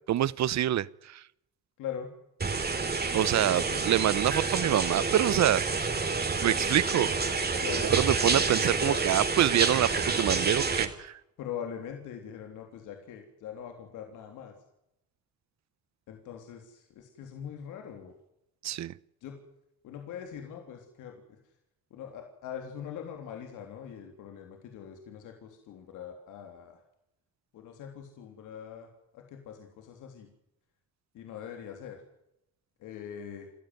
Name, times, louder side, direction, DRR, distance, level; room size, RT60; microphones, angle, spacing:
voice 1, 0.1-1.2 3.1-5.9 6.4-7.1 7.8-11.2 18.6-18.9, right 12 dB, 65° right, 21 dB, 0.9 m, -26 dB
voice 2, 1.8-2.1 3.7-3.8 7.6-7.9 8.4-9.0 11.4-14.5 16.1-18.1 19.2-19.4 19.8-21.2 21.9-26.8 27.5-30.3 31.1-32.0 32.8-33.5, left 8 dB, 90° left, 4 dB, 3.5 m, -42 dB
sound 1, 2.4-10.9, right 4 dB, 30° right, 3.9 m, -28 dB
28.5 x 14.0 x 9.5 m, 0.83 s
cardioid pair, 90°, 30 cm